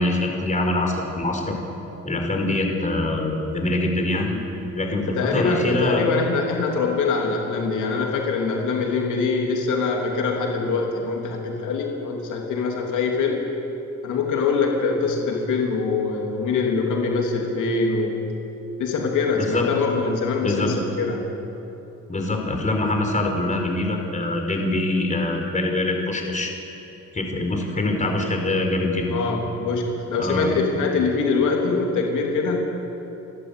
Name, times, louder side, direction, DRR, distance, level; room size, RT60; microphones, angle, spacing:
voice 1, 0.0-1.5 2.0-4.4 4.7-6.0 19.3-19.7 20.4-20.7 22.1-26.5 27.1-29.1 30.1-30.5, left 2 dB, 25° left, 2 dB, 4.5 m, -24 dB
voice 2, 5.0-13.4 14.0-18.1 18.8-21.3 29.1-32.7, left 4 dB, 80° left, 0 dB, 3.1 m, -23 dB
29.5 x 12.0 x 8.4 m, 2.9 s
cardioid pair, 90°, 30 cm